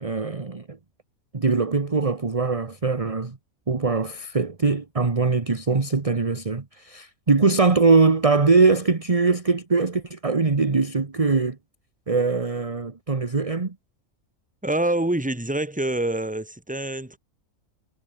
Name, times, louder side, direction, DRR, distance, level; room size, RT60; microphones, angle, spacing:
voice 1, 0.0-0.8 1.3-3.4 3.7-11.6 12.1-13.8, right 4 dB, 25° right, 1.3 m, -22 dB
voice 2, 14.6-17.2, right 1 dB, 5° right, 2.0 m, -26 dB
omnidirectional pair, 1.4 m